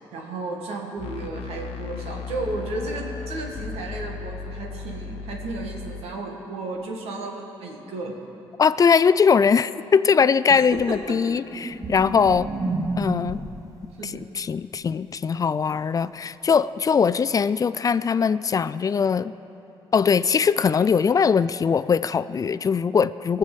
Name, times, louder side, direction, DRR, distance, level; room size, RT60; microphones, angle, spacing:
voice 1, 0.1-8.2 10.7-11.2 14.0-14.3, right 2 dB, 85° right, 1 dB, 1.8 m, -33 dB
sound 1, 1.0-6.0, left 5 dB, 75° left, 0.8 m, -36 dB
voice 2, 8.6-12.5 13.0-13.4 14.0-19.3 19.9-23.4, left 6 dB, 35° left, 15 dB, 0.3 m, -21 dB
sound 2, 10.7-13.7 16.5-16.6, right 3 dB, 35° right, 1.4 m, -31 dB
19.5 x 6.8 x 7.4 m, 3.0 s
cardioid pair, 75°, 10 cm